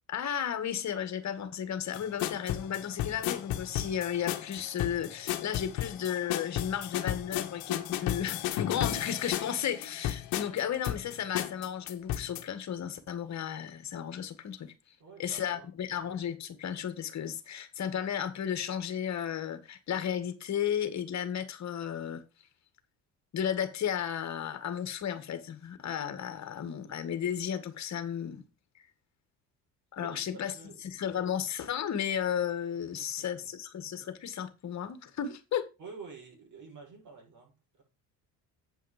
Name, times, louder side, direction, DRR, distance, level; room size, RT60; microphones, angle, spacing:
voice 1, 0.1-14.7 15.2-22.2 23.3-28.5 28.8-28.9 29.9-30.5 30.8-35.7, left 9 dB, 50° left, 1.8 m, -34 dB
sound 1, 1.9-12.4, left 13 dB, 75° left, 1.2 m, -34 dB
voice 2, 15.0-15.7 30.0-30.8 32.9-33.5 35.8-37.8, right 5 dB, 55° right, 6.9 m, -49 dB
9.1 x 5.6 x 5.1 m
supercardioid pair, 85°, 36 cm